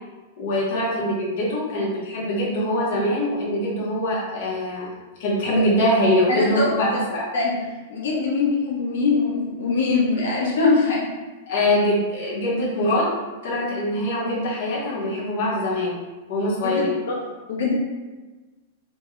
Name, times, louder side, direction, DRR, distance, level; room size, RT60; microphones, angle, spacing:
voice 1, 0.4-4.9 5.2-7.2 11.5-13.1 13.4-16.0 16.3-16.9, left 1 dB, 50° left, -5 dB, 0.8 m, -23 dB
voice 2, 6.4-6.7 7.3-7.6 7.9-11.1 16.6-17.1 17.5-17.8, left 4 dB, 80° left, -3 dB, 0.9 m, -22 dB
3.5 x 2.2 x 3.0 m, 1.2 s
supercardioid pair, 175°, 0 cm